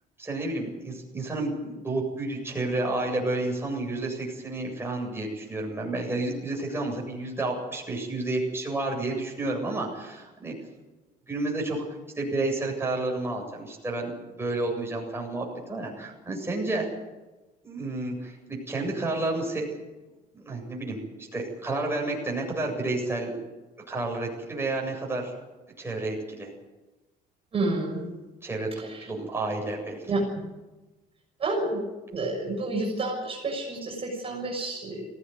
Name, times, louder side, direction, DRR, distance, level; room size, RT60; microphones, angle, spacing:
voice 1, 0.2-10.5 11.3-11.8 12.1-16.9 17.6-19.7 20.3-21.0 21.3-23.4 23.9-25.3 25.8-26.5 28.4-30.1, right 2 dB, 15° right, -1 dB, 7.9 m, -30 dB
voice 2, 27.5-28.2 28.8-29.1 30.1-30.5 31.4-31.8 32.1-35.1, right 2 dB, 35° right, -2 dB, 6.7 m, -30 dB
19.5 x 17.0 x 9.7 m, 1.1 s
cardioid pair, 110°, 17 cm